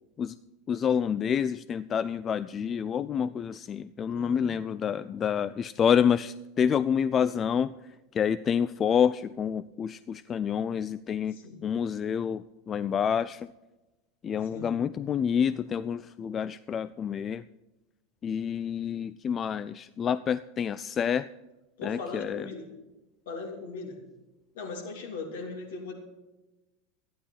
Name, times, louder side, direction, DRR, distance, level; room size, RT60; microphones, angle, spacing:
voice 1, 0.7-13.5 14.2-17.4 18.2-21.3 21.8-22.5, left 8 dB, 30° left, 16 dB, 0.3 m, -28 dB
voice 2, 4.1-4.5 11.3-11.7 14.5-14.8 21.8-22.7 23.2-24.0 24.5-25.9, left 4 dB, 65° left, 0 dB, 3.0 m, -39 dB
13.0 x 10.0 x 5.8 m, 1.1 s
figure-of-eight pair, 85°, 0 cm